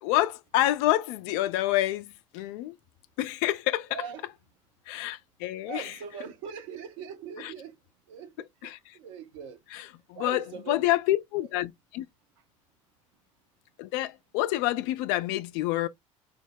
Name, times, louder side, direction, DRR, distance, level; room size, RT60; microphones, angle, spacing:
voice 1, 0.0-2.8 3.2-4.0 4.9-5.9 7.4-7.5 8.6-8.9 9.7-12.1 13.8-15.9, left 15 dB, 60° left, 0.5 m, -28 dB
voice 2, 3.9-4.3 5.6-7.8 8.1-9.6 10.1-10.9, right 7 dB, 70° right, 0.9 m, -41 dB
4.8 x 2.1 x 3.3 m
figure-of-eight pair, 60°, 17 cm